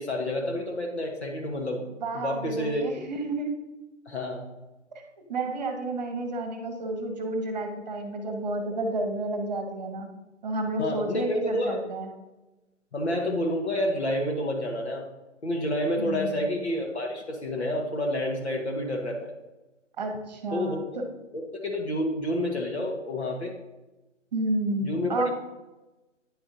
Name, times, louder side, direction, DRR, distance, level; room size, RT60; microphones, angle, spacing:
voice 1, 0.0-1.8 2.1-2.8 4.1-4.5 10.8-11.8 12.9-15.0 15.4-19.3 20.5-20.8 21.3-23.5 24.8-25.3, left 1 dB, 60° left, 1 dB, 1.2 m, -29 dB
voice 2, 2.0-3.5 5.3-10.1 10.4-12.1 16.0-16.5 20.0-21.0 24.3-25.3, right 2 dB, 35° right, 4 dB, 1.1 m, -31 dB
9.7 x 4.9 x 2.6 m, 1.1 s
figure-of-eight pair, 145°, 37 cm